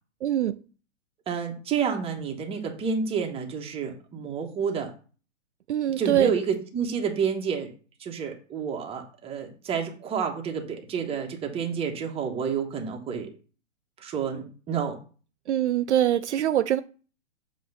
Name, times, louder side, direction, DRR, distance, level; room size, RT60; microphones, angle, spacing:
voice 1, 0.2-0.6 5.7-6.3 15.5-16.8, right 11 dB, 65° right, 0.5 m, -23 dB
voice 2, 1.3-4.9 6.0-7.7 8.0-13.3 14.0-15.0, right 6 dB, 15° right, 1.1 m, -29 dB
7.5 x 3.1 x 5.6 m
figure-of-eight pair, 120°, 38 cm